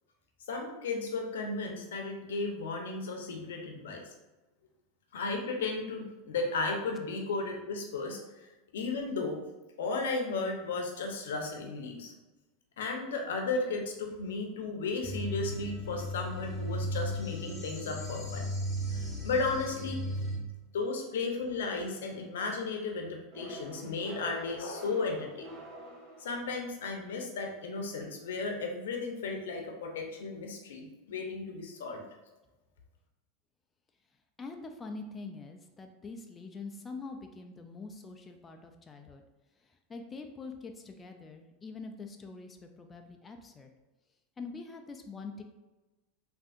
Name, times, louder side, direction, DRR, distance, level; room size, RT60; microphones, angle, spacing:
voice 1, 0.5-4.1 5.1-8.5 8.7-9.4 9.8-12.1 12.8-18.5 18.9-20.0 20.7-25.5 26.2-32.0, left 3 dB, 85° left, 2 dB, 0.6 m, -34 dB
sound 1, 15.0-20.4, equal, 5° right, 1.0 m, -36 dB
sound 2, 23.3-26.8, right 1 dB, 30° right, 0.7 m, -47 dB
voice 2, 34.4-39.2 39.6-43.7 44.4-45.4, left 3 dB, 20° left, 4 dB, 0.3 m, -44 dB
3.5 x 2.6 x 2.4 m, 1.1 s
hypercardioid pair, 115°, 0 cm